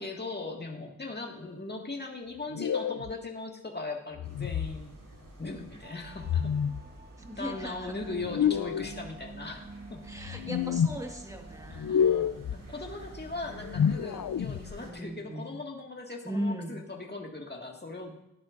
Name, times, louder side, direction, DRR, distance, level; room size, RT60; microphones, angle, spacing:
voice 1, 0.0-4.9 5.4-6.5 7.4-10.0 11.9-18.2, left 3 dB, 30° left, 1 dB, 1.9 m, -39 dB
sound 1, 2.5-3.1 4.2-4.8 6.2-6.8 8.2-8.9 10.2-11.0 11.7-12.6 13.5-14.8, left 8 dB, 75° left, 0.5 m, -28 dB
sound 2, 4.2-14.9, right 2 dB, 85° right, 2.7 m, -50 dB
sound 3, 5.8-15.3, right 3 dB, 30° right, 0.9 m, -50 dB
voice 2, 7.2-8.0 10.0-12.2 14.8-15.6 16.2-16.8, right 1 dB, 10° right, 3 dB, 1.7 m, -38 dB
18.5 x 11.0 x 2.5 m, 0.83 s
wide cardioid pair, 60°, 32 cm